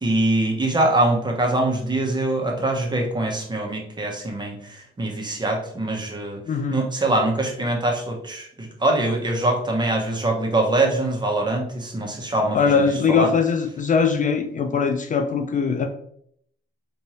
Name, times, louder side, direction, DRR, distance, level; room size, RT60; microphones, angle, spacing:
voice 1, 0.0-6.4 6.7-12.8 13.1-13.3, right 2 dB, 20° right, 1 dB, 1.1 m, -23 dB
voice 2, 6.5-6.8 12.5-15.9, left 5 dB, 40° left, 6 dB, 0.4 m, -21 dB
4.4 x 2.7 x 3.1 m, 0.68 s
cardioid pair, 90°, 20 cm